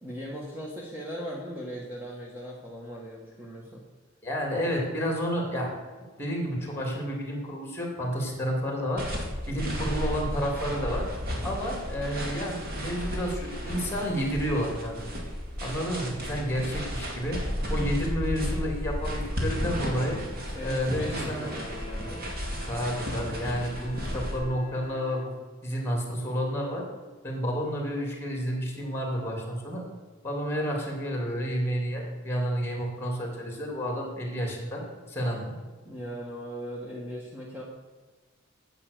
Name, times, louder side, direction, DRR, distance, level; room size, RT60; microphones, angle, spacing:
voice 1, 0.0-3.8 9.5-9.8 17.6-18.0 20.5-22.4 35.8-37.6, equal, 10° right, -4 dB, 1.5 m, -39 dB
voice 2, 4.2-5.7 6.2-9.1 9.5-11.1 11.4-15.0 15.6-17.4 17.7-20.2 20.6-21.5 22.6-25.3 25.6-26.9 27.2-29.9 30.2-35.6, equal, 10° left, 0 dB, 3.0 m, -30 dB
sound 1, 9.0-24.4, equal, 50° right, 2.3 m, -33 dB
Wind instrument woodwind instrument, 20.8-25.3, left 1 dB, 35° left, 0.9 m, -48 dB
9.7 x 8.3 x 6.8 m, 1.4 s
head